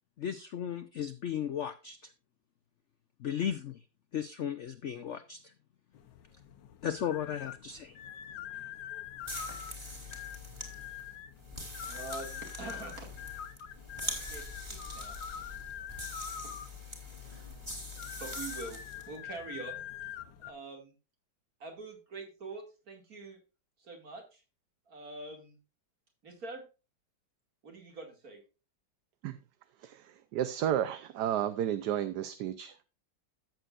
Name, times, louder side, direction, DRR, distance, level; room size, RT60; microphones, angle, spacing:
voice 1, 0.2-2.0 3.2-3.8 4.1-5.5 6.8-8.0, left 9 dB, 65° left, 11 dB, 0.7 m, -35 dB
sound 1, 5.9-20.5, left 10 dB, 85° left, 1.6 m, -45 dB
sound 2, 9.2-19.1, left 1 dB, 15° right, 2.7 m, -43 dB
voice 2, 11.8-13.1 14.0-15.2 16.4-16.5 18.2-18.8 19.1-19.8 20.4-20.9 21.6-23.4 23.8-24.4 24.9-25.6 26.2-26.6 27.6-28.4, right 3 dB, 55° right, 3 dB, 2.9 m, -44 dB
voice 3, 29.8-32.9, right 10 dB, 70° right, 12 dB, 1.2 m, -32 dB
13.5 x 7.9 x 2.5 m, 0.31 s
omnidirectional pair, 1.9 m